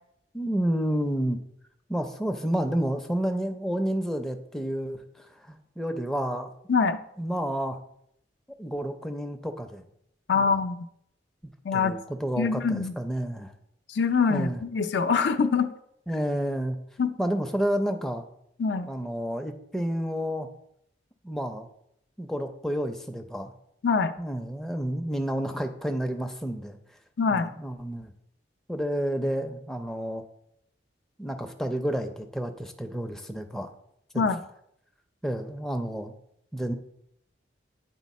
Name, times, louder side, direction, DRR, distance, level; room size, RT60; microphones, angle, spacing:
voice 1, 0.3-1.4 1.9-6.5 7.2-7.8 8.6-9.8 10.3-10.6 11.7-13.5 14.3-14.6 16.1-16.8 17.2-18.3 18.9-20.5 21.2-21.7 22.2-23.5 24.2-26.8 27.3-28.1 28.7-30.3 31.2-33.7 34.1-34.3 35.2-36.1 36.5-36.7, equal, 5° left, 5 dB, 0.4 m, -30 dB
voice 2, 10.3-10.8 11.6-12.0 12.4-12.9 13.9-15.7 17.0-17.1 18.6-18.9 23.8-24.1 27.2-27.5 34.1-34.4, left 5 dB, 70° left, 9 dB, 0.4 m, -24 dB
9.1 x 4.1 x 4.1 m, 0.75 s
head